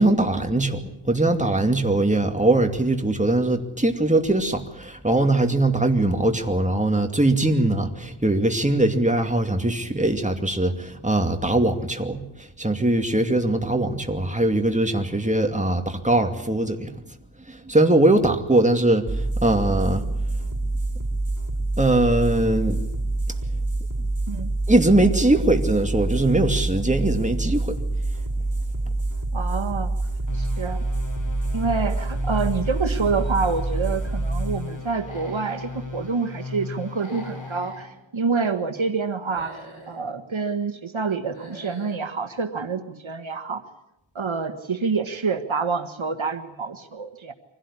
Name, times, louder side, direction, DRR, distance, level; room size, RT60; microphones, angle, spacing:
voice 1, 0.0-16.9 17.5-20.0 21.8-22.8 24.7-27.8, right 2 dB, 15° right, 5 dB, 2.5 m, -21 dB
sound 1, 19.1-36.1, right 2 dB, 35° right, 5.4 m, -27 dB
voice 2, 29.3-30.0 30.3-30.8 31.5-39.6 39.9-43.6 44.1-47.3, right 4 dB, 70° right, 8 dB, 1.6 m, -27 dB
sound 2, 30.3-37.8, left 4 dB, 40° left, 6.1 m, -37 dB
Human voice / Animal, 34.9-35.8 36.9-37.9 39.2-40.0 41.2-42.0, equal, 80° left, 7.9 m, -43 dB
24.5 x 16.5 x 9.9 m, 0.88 s
wide cardioid pair, 50°, 48 cm